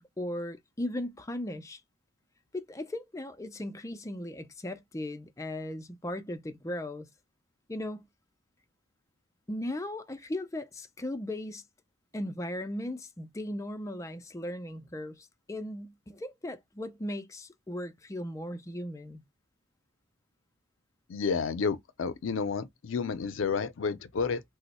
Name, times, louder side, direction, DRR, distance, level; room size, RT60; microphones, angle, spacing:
voice 1, 0.0-1.8 2.5-7.1 7.7-8.1 9.5-11.6 12.1-19.2, left 1 dB, 15° left, 0.4 m, -37 dB
voice 2, 21.1-24.4, left 5 dB, 75° left, 0.5 m, -30 dB
2.9 x 2.0 x 4.0 m
head